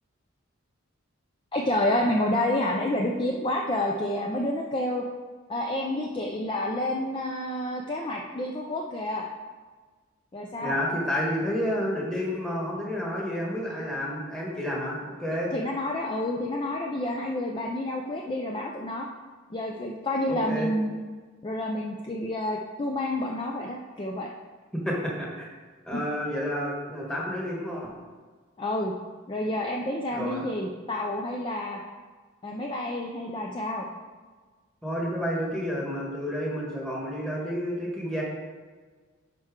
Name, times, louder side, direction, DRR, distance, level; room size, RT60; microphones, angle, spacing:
voice 1, 1.5-5.0 5.5-9.3 10.3-10.8 15.5-19.1 19.5-21.0 21.4-24.3 28.6-28.9 29.3-31.8 32.4-33.9, left 1 dB, 25° left, 0 dB, 0.4 m, -29 dB
voice 2, 10.6-15.5 20.3-20.7 24.7-25.5 25.8-27.9 30.1-30.5 34.8-38.2, equal, 5° left, -4 dB, 1.4 m, -30 dB
10.5 x 4.4 x 3.7 m, 1.4 s
head